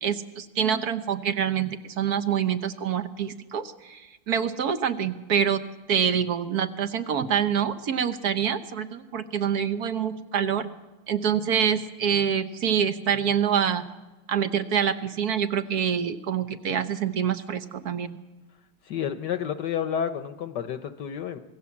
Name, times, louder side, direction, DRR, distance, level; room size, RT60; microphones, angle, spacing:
voice 1, 0.0-5.6 5.9-10.7 11.1-13.9 14.3-18.2, right 8 dB, 55° right, 10 dB, 1.2 m, -26 dB
voice 2, 18.8-21.4, left 8 dB, 65° left, 10 dB, 1.3 m, -30 dB
25.0 x 17.0 x 7.2 m, 1.1 s
omnidirectional pair, 2.3 m